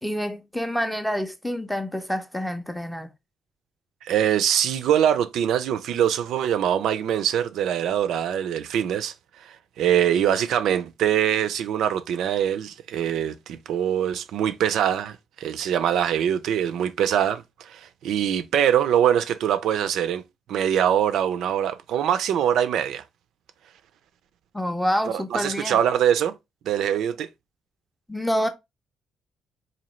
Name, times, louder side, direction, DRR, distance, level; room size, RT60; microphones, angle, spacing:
voice 1, 0.0-3.1 24.5-25.8 28.1-28.5, equal, ahead, 0.4 m, -27 dB
voice 2, 4.0-20.2 20.5-23.0 25.1-26.3 26.7-27.3, right 9 dB, 70° right, 0.4 m, -23 dB
4.0 x 2.6 x 3.0 m
cardioid pair, 180°, 0 cm